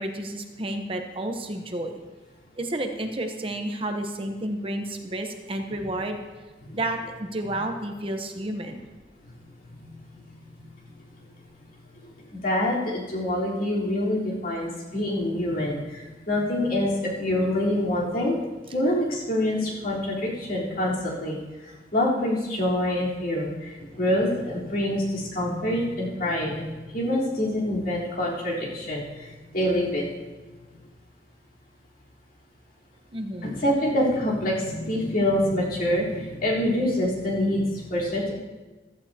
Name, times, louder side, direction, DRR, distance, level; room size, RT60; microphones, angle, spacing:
voice 1, 0.0-1.9 2.6-6.2 6.7-8.8 33.1-33.5, right 1 dB, 30° right, 5 dB, 0.9 m, -31 dB
voice 2, 9.8-10.2 12.3-18.4 18.7-21.4 21.9-26.7 26.9-30.0 33.4-38.3, left 1 dB, 55° left, -6 dB, 3.8 m, -26 dB
15.5 x 14.0 x 2.9 m, 1.2 s
head